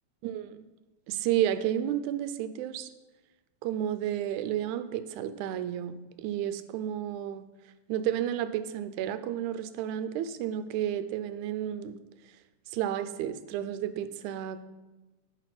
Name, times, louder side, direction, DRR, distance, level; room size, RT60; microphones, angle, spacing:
voice 1, 0.2-0.6 1.1-2.9 3.6-7.5 7.9-12.0 12.7-14.6, right 11 dB, 90° right, 11 dB, 2.0 m, -31 dB
12.0 x 4.5 x 5.9 m, 1.1 s
omnidirectional pair, 3.4 m